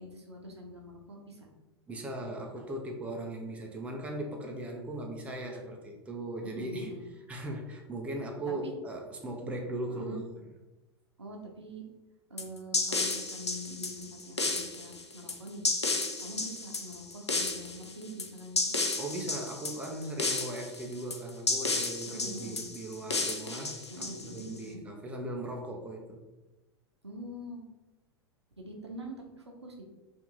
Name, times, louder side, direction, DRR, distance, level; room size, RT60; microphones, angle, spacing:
voice 1, 0.0-1.5 6.4-7.1 8.5-8.7 9.9-10.2 11.2-11.8 12.3-15.6 16.2-18.8 22.1-22.7 23.9-24.8 27.0-27.6 28.6-29.9, equal, 80° right, 1 dB, 0.7 m, -44 dB
voice 2, 1.9-6.9 7.3-10.4 19.0-26.2, right 1 dB, 10° right, 1 dB, 0.4 m, -38 dB
sound 1, 12.4-24.6, left 3 dB, 85° left, 0.4 m, -32 dB
2.8 x 2.5 x 3.7 m, 1.1 s
figure-of-eight pair, 90°, 14 cm